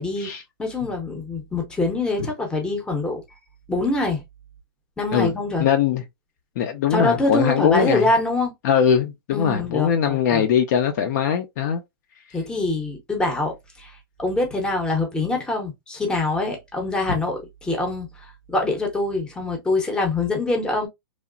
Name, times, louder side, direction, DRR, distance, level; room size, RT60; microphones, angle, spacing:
voice 1, 0.0-0.3 0.6-3.2 3.7-4.2 5.0-5.7 6.9-8.5 9.3-10.5 12.3-20.9, left 2 dB, 5° left, 0.7 m, -24 dB
voice 2, 5.6-6.0 6.6-8.1 8.6-11.8, left 8 dB, 45° left, 0.5 m, -21 dB
3.0 x 2.0 x 2.4 m
hypercardioid pair, 145°, 13 cm